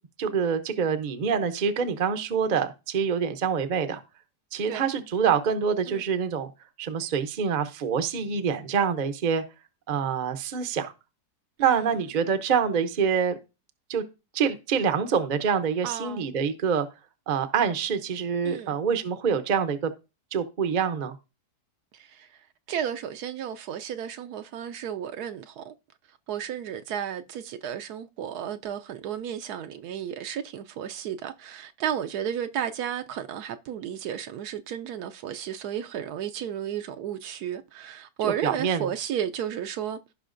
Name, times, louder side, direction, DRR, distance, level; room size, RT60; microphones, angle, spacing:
voice 1, 0.2-4.0 4.5-6.5 6.8-9.4 9.9-10.9 11.6-13.4 13.9-14.0 14.3-16.9 17.3-19.9 20.3-21.2 38.2-38.9, right 6 dB, 45° right, 0.6 m, -26 dB
voice 2, 11.6-11.9 15.8-16.3 18.4-18.8 21.9-22.3 22.7-25.7 26.3-40.0, right 9 dB, 75° right, 1.1 m, -33 dB
15.5 x 5.6 x 2.5 m
omnidirectional pair, 1.8 m